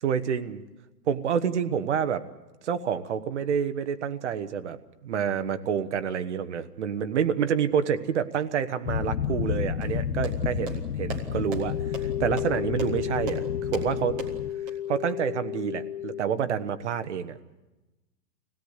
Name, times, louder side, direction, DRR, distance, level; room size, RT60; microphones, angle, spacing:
voice 1, 0.0-0.6 1.1-2.3 2.6-4.8 5.0-13.4 13.7-14.2 14.9-17.4, right 7 dB, 45° right, 10 dB, 1.2 m, -28 dB
sound 1, 8.9-14.5, left 8 dB, 80° left, 1.3 m, -31 dB
sound 2, 9.8-14.7, right 4 dB, 5° right, 0.7 m, -40 dB
sound 3, 11.2-16.2, left 11 dB, 30° left, 2.2 m, -33 dB
25.0 x 17.0 x 8.2 m, 1.1 s
hypercardioid pair, 165°, 49 cm